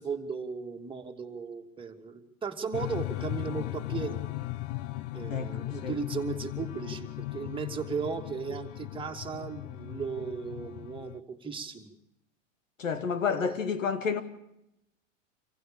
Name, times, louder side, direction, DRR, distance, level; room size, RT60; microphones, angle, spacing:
voice 1, 0.0-4.2 5.1-11.9 13.2-13.7, right 6 dB, 15° right, 2.7 m, -36 dB
sound 1, 2.7-11.2, left 16 dB, 50° left, 1.1 m, -37 dB
voice 2, 12.8-14.2, left 6 dB, 90° left, 2.4 m, -30 dB
27.0 x 15.5 x 7.2 m
hypercardioid pair, 110°, 38 cm